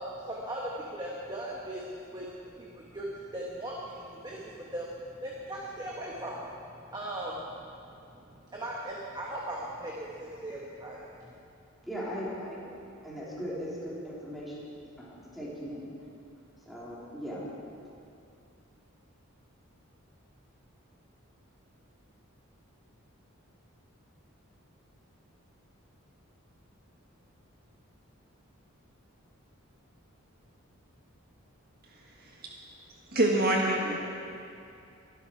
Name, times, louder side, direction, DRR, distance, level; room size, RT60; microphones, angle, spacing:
voice 1, 0.0-11.3, right 1 dB, 20° right, -4 dB, 1.6 m, -39 dB
voice 2, 11.9-15.9 16.6-17.4, equal, ahead, -8 dB, 3.7 m, -39 dB
voice 3, 31.9-32.5 33.1-34.0, right 1 dB, 45° right, -1 dB, 1.5 m, -27 dB
23.5 x 12.0 x 4.8 m, 2.6 s
head